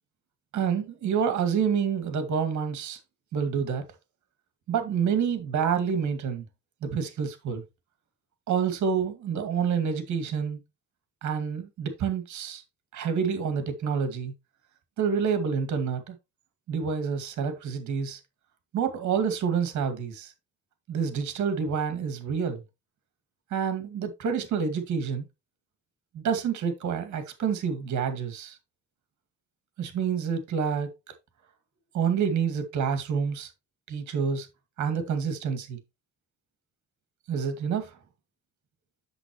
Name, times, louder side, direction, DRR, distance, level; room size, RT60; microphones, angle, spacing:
voice 1, 0.5-3.0 3.3-3.8 4.7-6.5 6.8-7.6 8.5-10.6 11.2-12.6 12.9-14.3 15.0-16.2 16.7-18.2 18.7-20.3 20.9-22.6 23.5-25.3 26.1-28.6 29.8-30.9 31.9-33.5 33.9-34.5 34.8-35.8 37.3-37.9, right 6 dB, 75° right, 2.2 m, -28 dB
8.0 x 6.8 x 3.0 m
cardioid pair, 90°, 30 cm